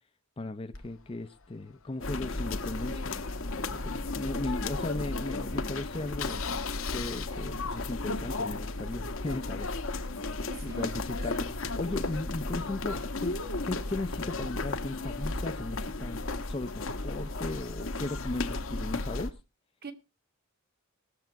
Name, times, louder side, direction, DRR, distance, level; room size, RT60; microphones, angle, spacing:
voice 1, 0.4-3.1 3.8-6.4 6.9-10.1 10.6-11.5 11.8-13.4 13.6-16.2 16.5-19.3, left 2 dB, 25° left, 0.6 m, -37 dB
Engine starting, 0.7-4.9 5.4-5.5 5.7-5.8 6.1-7.3, left 8 dB, 90° left, 1.2 m, -42 dB
sound 1, 2.0-19.3, left 2 dB, 70° left, 1.1 m, -34 dB
voice 2, 10.4-11.4 19.8-19.9, right 3 dB, 50° right, 1.7 m, -44 dB
18.0 x 7.1 x 4.5 m
head